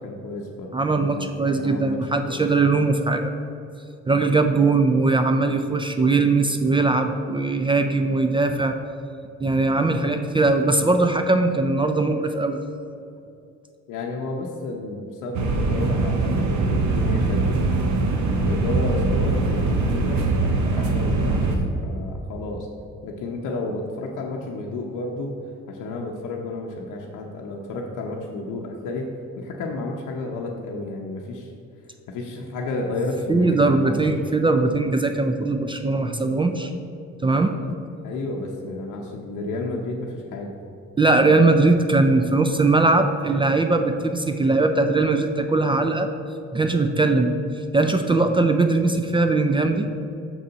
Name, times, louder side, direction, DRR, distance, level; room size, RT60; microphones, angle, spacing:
voice 1, 0.0-2.4 13.9-18.0 18.4-22.7 23.0-25.3 25.7-29.1 29.4-31.5 32.1-33.9 38.0-40.5, left 2 dB, 90° left, -1 dB, 0.7 m, -31 dB
voice 2, 0.7-3.3 4.1-8.8 9.4-12.6 33.3-36.7 37.2-37.8 41.0-46.1 46.5-49.9, right 3 dB, 15° right, 6 dB, 0.4 m, -20 dB
sound 1, 15.3-21.6, right 3 dB, 70° right, 0.9 m, -22 dB
6.2 x 3.9 x 5.6 m, 2.6 s
cardioid pair, 90°, 30 cm